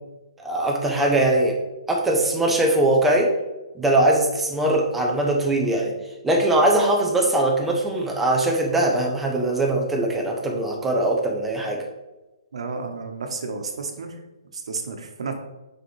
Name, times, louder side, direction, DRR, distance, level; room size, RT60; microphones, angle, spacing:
voice 1, 0.4-1.6 1.9-3.3 3.7-6.0 6.2-11.9, right 1 dB, 5° right, -1 dB, 0.8 m, -21 dB
voice 2, 12.5-14.2 14.5-15.3, right 4 dB, 70° right, 4 dB, 1.2 m, -32 dB
6.6 x 5.0 x 3.3 m, 1.1 s
hypercardioid pair, 160°, 3 cm